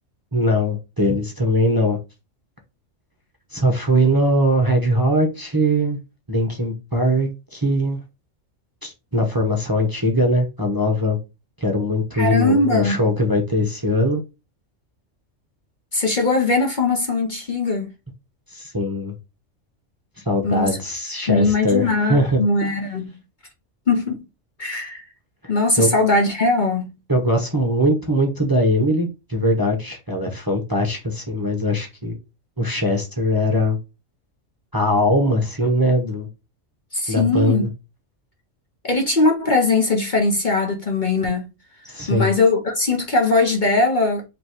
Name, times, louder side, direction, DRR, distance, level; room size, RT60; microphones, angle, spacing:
voice 1, 0.3-2.0 3.5-6.0 6.3-8.0 8.8-11.2 11.6-14.2 18.5-19.1 20.3-22.4 25.8-25.9 27.1-32.2 32.6-33.8 34.7-36.3 37.1-37.7 41.8-42.3, equal, 20° right, 0.9 m, -21 dB
voice 2, 12.1-13.0 15.9-17.9 20.4-20.8 21.3-23.2 23.9-24.2 24.6-25.0 25.5-26.9 36.9-37.6 38.8-41.4 42.1-44.2, left 3 dB, 40° left, 1.0 m, -20 dB
5.2 x 3.1 x 3.0 m
omnidirectional pair, 1.3 m